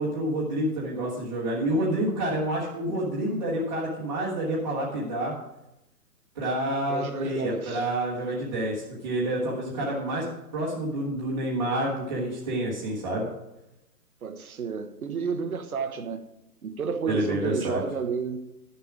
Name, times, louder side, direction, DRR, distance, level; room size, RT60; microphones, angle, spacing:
voice 1, 0.0-5.3 6.3-10.2 10.5-13.3 17.1-17.8, right 1 dB, 20° right, 1.4 m, -28 dB
voice 2, 6.9-7.9 14.2-16.2 16.6-18.4, right 5 dB, 60° right, 1.2 m, -31 dB
11.5 x 7.1 x 4.8 m
hypercardioid pair, 180°, 48 cm